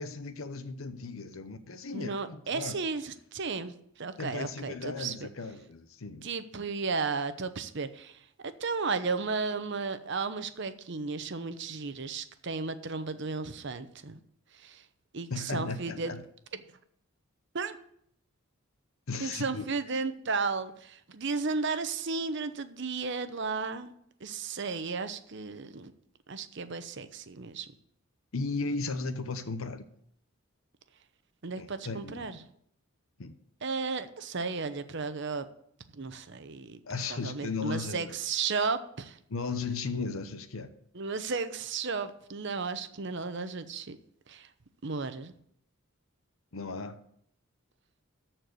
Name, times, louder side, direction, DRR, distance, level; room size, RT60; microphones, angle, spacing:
voice 1, 0.0-2.8 4.2-6.3 15.3-16.2 19.1-19.8 28.3-29.9 31.6-32.4 33.2-33.3 36.9-38.2 39.3-40.7 46.5-47.0, left 4 dB, 80° left, 0.9 m, -36 dB
voice 2, 1.9-3.7 4.0-5.3 6.2-14.2 14.5-14.8 15.1-16.1 17.5-17.8 19.2-23.9 24.2-25.9 26.3-27.7 31.4-32.4 33.6-35.5 35.9-36.8 37.1-39.2 40.9-44.0 44.3-44.5 44.8-45.3, right 4 dB, 60° right, 0.9 m, -34 dB
13.5 x 4.6 x 7.8 m
head